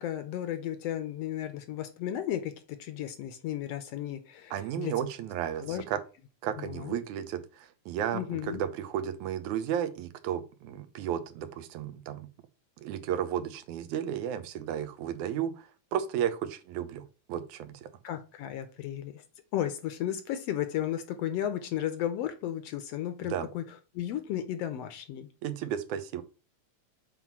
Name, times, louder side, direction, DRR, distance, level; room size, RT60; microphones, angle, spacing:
voice 1, 0.0-4.9 5.6-5.8 6.6-7.0 8.1-8.6 18.0-19.2 19.5-25.3, left 11 dB, 70° left, 1.6 m, -34 dB
voice 2, 4.5-6.0 6.4-12.3 12.8-17.9 23.3-23.5 25.4-26.2, right 9 dB, 90° right, 2.3 m, -33 dB
7.6 x 3.7 x 6.0 m
omnidirectional pair, 3.3 m